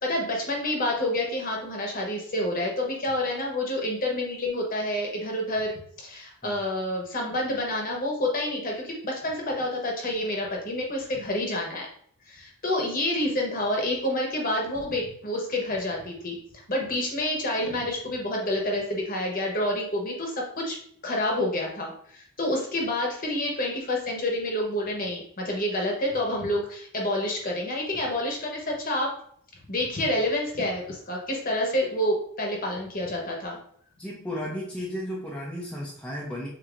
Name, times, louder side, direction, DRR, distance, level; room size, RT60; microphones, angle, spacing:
voice 1, 0.0-11.9 12.2-16.4 16.7-20.8 21.0-29.1 29.7-33.6, left 1 dB, 40° left, 0 dB, 1.1 m, -28 dB
voice 2, 34.0-36.5, equal, 5° left, -5 dB, 0.6 m, -34 dB
6.9 x 2.7 x 2.5 m, 0.63 s
head